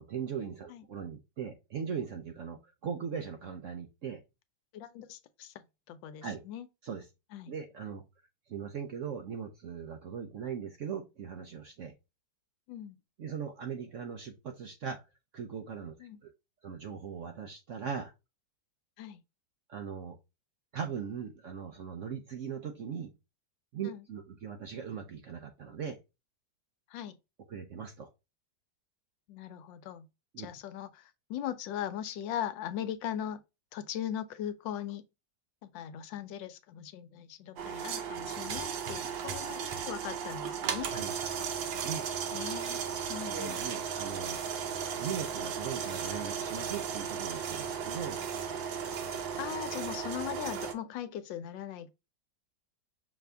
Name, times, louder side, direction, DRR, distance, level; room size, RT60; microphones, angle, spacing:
voice 1, 0.0-4.2 6.2-6.4 6.8-7.0 7.5-8.0 8.5-11.9 13.2-15.0 15.3-16.3 16.6-18.1 19.7-20.2 20.7-23.1 23.7-26.0 27.5-28.1 30.3-30.5 38.9-39.1 40.9-41.2 41.8-42.1 43.3-44.4 45.0-48.2, right 7 dB, 65° right, 0.8 m, -39 dB
voice 2, 4.7-6.7 7.3-7.5 12.7-13.0 16.0-16.2 19.0-19.2 23.8-24.0 26.9-27.2 29.3-30.1 30.4-33.4 33.7-35.0 35.6-40.9 42.3-42.8 43.1-43.6 49.4-51.9, left 10 dB, 85° left, 1.3 m, -39 dB
sound 1, 37.6-50.7, right 7 dB, 90° right, 1.5 m, -35 dB
5.8 x 2.7 x 3.3 m
omnidirectional pair, 2.0 m